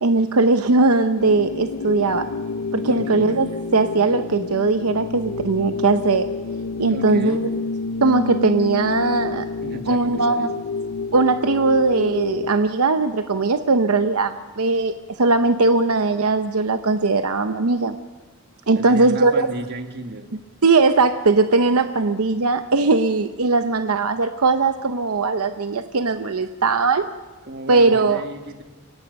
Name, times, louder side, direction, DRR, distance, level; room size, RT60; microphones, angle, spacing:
voice 1, 0.0-2.3 2.7-6.3 6.8-7.4 8.0-9.5 9.9-10.5 11.1-18.0 18.7-19.5 20.6-27.1 27.7-28.2, right 3 dB, 80° right, 9 dB, 0.8 m, -19 dB
sound 1, 1.2-12.5, left 4 dB, 80° left, 0.6 m, -29 dB
voice 2, 2.8-3.3 6.9-7.4 9.6-10.6 18.7-20.3 27.4-28.6, right 1 dB, 50° right, 6 dB, 1.9 m, -34 dB
29.5 x 18.0 x 5.4 m, 1.3 s
head